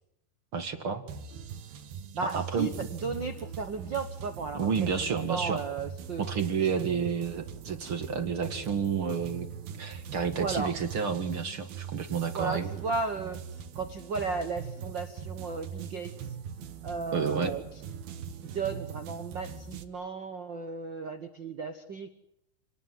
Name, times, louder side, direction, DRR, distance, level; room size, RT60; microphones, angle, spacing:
voice 1, 0.5-1.1 2.3-2.7 4.5-5.6 6.2-9.5 9.8-12.7 17.1-17.5, right 6 dB, 45° right, 8 dB, 2.3 m, -30 dB
sound 1, 1.1-19.8, right 7 dB, 90° right, 3.7 m, -42 dB
voice 2, 2.1-6.2 6.8-6.9 10.3-10.7 12.3-16.3 16.8-18.0 18.4-22.1, right 4 dB, 65° right, 8 dB, 1.1 m, -35 dB
29.5 x 19.0 x 9.6 m, 0.80 s
omnidirectional pair, 4.1 m